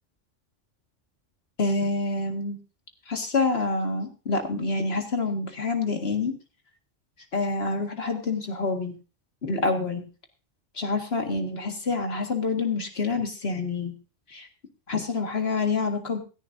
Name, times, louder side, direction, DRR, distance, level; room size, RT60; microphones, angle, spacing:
voice 1, 1.6-2.6 3.1-6.3 7.3-8.9 9.4-10.1 10.8-13.9 14.3-14.5 14.9-16.2, left 3 dB, 55° left, 3 dB, 2.1 m, -27 dB
16.5 x 14.0 x 2.7 m, 0.33 s
omnidirectional pair, 1.2 m